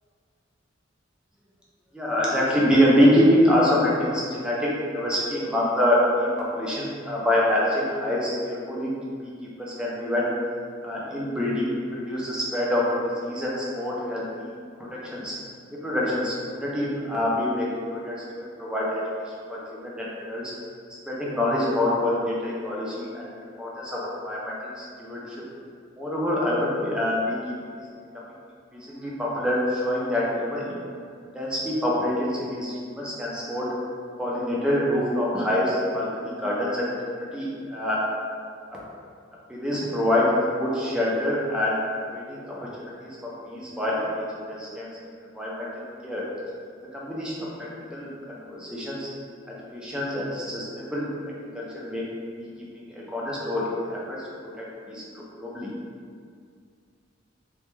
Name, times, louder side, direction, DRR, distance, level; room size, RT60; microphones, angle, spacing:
voice 1, 1.9-8.9 9.2-9.3 9.6-10.3 10.8-14.5 14.8-15.4 15.7-18.2 18.6-19.0 19.5-20.5 21.1-25.4 26.0-27.4 27.8-27.9 28.7-30.8 31.3-33.7 34.2-36.9 37.1-38.1 39.5-41.8 42.1-42.7 43.0-44.9 45.4-46.3 46.9-49.1 49.7-51.1 51.4-52.0 52.4-52.5 52.7-54.2 54.6-55.7, left 1 dB, 5° right, -6 dB, 0.3 m, -26 dB
2.2 x 2.1 x 3.0 m, 2.2 s
head